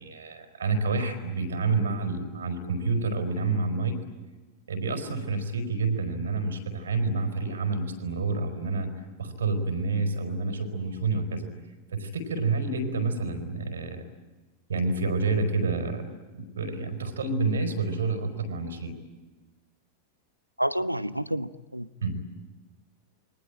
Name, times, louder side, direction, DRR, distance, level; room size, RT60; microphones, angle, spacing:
voice 1, 0.0-4.0 4.7-8.9 9.2-11.5 11.9-14.0 14.7-19.0 22.0-22.2, right 3 dB, 70° right, 8 dB, 4.8 m, -28 dB
voice 2, 20.6-21.9, right 1 dB, 90° right, 16 dB, 0.9 m, -29 dB
28.0 x 23.5 x 9.0 m, 1.2 s
figure-of-eight pair, 90°, 0 cm